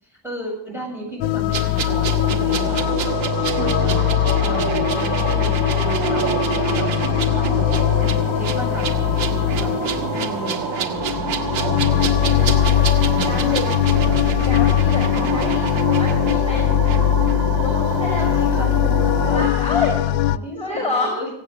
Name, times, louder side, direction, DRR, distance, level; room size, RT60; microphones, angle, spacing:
voice 1, 0.0-12.6 13.1-14.3 15.1-15.5 18.2-21.3, equal, 5° right, -1 dB, 8.0 m, -35 dB
sound 1, 1.2-20.4, left 14 dB, 85° left, 0.7 m, -20 dB
sound 2, 1.5-17.0 17.3-17.4, right 7 dB, 85° right, 1.8 m, -31 dB
sound 3, 1.9-19.5, right 11 dB, 55° right, 0.6 m, -28 dB
voice 2, 6.9-8.1 13.2-13.7 14.4-16.7 17.6-18.6 19.2-20.0 20.5-21.1, left 3 dB, 15° left, 1 dB, 5.0 m, -28 dB
17.5 x 9.2 x 6.8 m, 0.79 s
cardioid pair, 100°, 45 cm